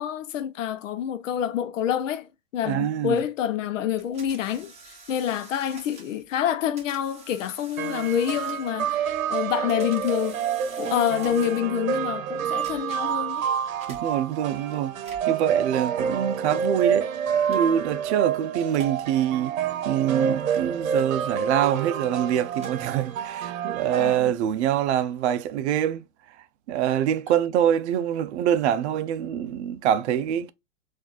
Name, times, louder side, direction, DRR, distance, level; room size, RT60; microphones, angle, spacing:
voice 1, 0.0-10.4 10.8-13.5 24.0-24.1, left 10 dB, 70° left, 0.7 m, -27 dB
voice 2, 2.6-3.2 13.9-15.0 15.3-17.1 17.5-19.6 19.8-26.0 26.7-30.5, right 10 dB, 55° right, 0.6 m, -25 dB
sound 1, 4.0-6.2 6.8-8.9 9.5-11.8 12.5-13.1 13.8-14.0 14.9-15.4 16.3-16.7 17.5-17.9 18.7-19.0 19.8-21.6 22.3-23.4, right 4 dB, 15° right, 1.3 m, -48 dB
sound 2, 7.8-24.2, right 8 dB, 85° right, 0.8 m, -28 dB
4.0 x 2.6 x 2.4 m
hypercardioid pair, 130°, 40 cm